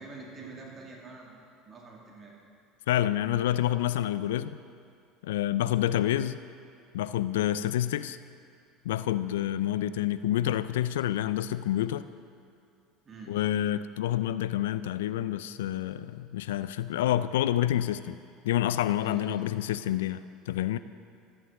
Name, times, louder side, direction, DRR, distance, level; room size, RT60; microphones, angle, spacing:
voice 1, 0.0-2.3 13.0-13.4 19.0-19.4, right 3 dB, 35° right, -1 dB, 2.3 m, -46 dB
voice 2, 2.9-4.6 5.2-6.4 6.9-8.2 8.8-12.1 13.3-18.2 18.4-20.8, left 12 dB, 80° left, 14 dB, 0.3 m, -28 dB
12.0 x 8.8 x 6.4 m, 2.5 s
hypercardioid pair, 80°, 0 cm